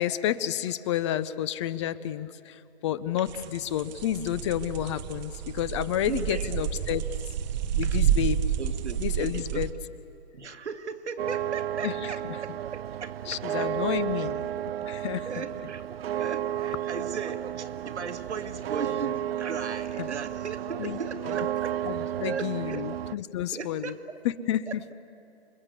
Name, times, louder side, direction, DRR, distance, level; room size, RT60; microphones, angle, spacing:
voice 1, 0.0-7.0 7.8-8.4 9.0-9.7 11.8-12.1 13.3-14.5 14.8-15.3 20.0-20.1 20.8-21.0 21.8-23.9 24.2-24.7, left 11 dB, 25° left, 15 dB, 0.5 m, -30 dB
sound 1, 3.3-9.7, right 10 dB, 40° right, 0.9 m, -29 dB
voice 2, 6.1-6.6 7.8-8.0 8.6-9.7 10.3-13.7 14.1-14.3 15.3-21.8 22.2-22.9 23.5-24.0 24.7-24.9, right 5 dB, 80° right, 5 dB, 1.9 m, -37 dB
sound 2, 11.2-23.2, right 11 dB, 60° right, 0.5 m, -32 dB
28.0 x 21.5 x 8.3 m, 2.8 s
hypercardioid pair, 135°, 34 cm